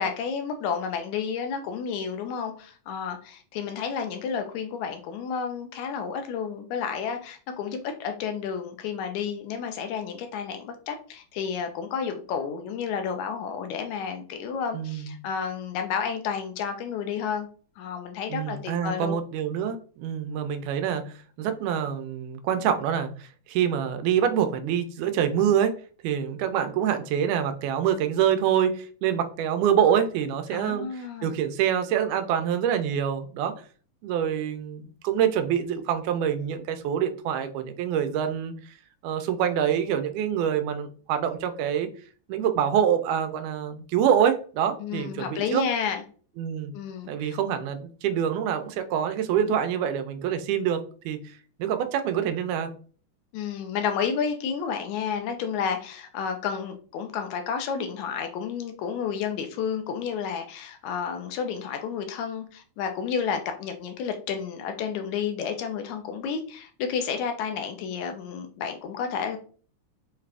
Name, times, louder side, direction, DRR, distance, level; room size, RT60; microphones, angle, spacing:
voice 1, 0.0-17.5 17.8-19.1 30.5-31.3 44.8-46.0 46.7-47.4 53.3-69.4, left 6 dB, 80° left, 6 dB, 2.0 m, -31 dB
voice 2, 14.7-15.2 18.3-25.7 26.0-33.5 34.0-38.5 39.0-41.9 42.3-45.7 46.4-46.8 47.1-51.2 51.6-52.7, right 9 dB, 90° right, 8 dB, 2.1 m, -26 dB
5.6 x 2.5 x 3.3 m, 0.41 s
omnidirectional pair, 3.5 m